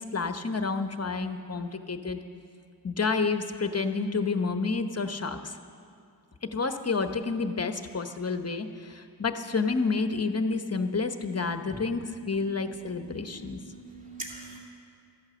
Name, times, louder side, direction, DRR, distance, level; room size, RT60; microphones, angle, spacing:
voice 1, 0.0-2.2 2.8-5.6 6.4-13.6, left 4 dB, 35° left, 8 dB, 1.0 m, -29 dB
voice 2, 11.5-14.6, right 2 dB, 20° right, -2 dB, 2.4 m, -45 dB
13.5 x 11.5 x 7.7 m, 2.4 s
wide cardioid pair, 65°, 41 cm